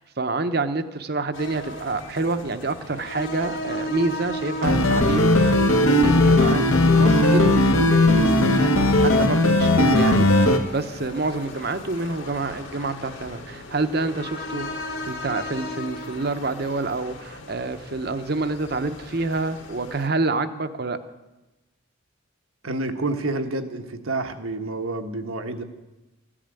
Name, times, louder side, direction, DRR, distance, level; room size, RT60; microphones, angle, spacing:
voice 1, 0.0-10.3 10.7-14.7 15.0-21.0, right 3 dB, 50° right, 11 dB, 0.8 m, -28 dB
sound 1, 1.3-20.1, left 1 dB, 65° left, 2.3 m, -37 dB
sound 2, 4.6-10.6, left 1 dB, 85° left, 1.6 m, -17 dB
voice 2, 22.6-25.6, right 2 dB, 80° right, 6 dB, 1.3 m, -28 dB
14.5 x 8.7 x 9.0 m, 1.1 s
head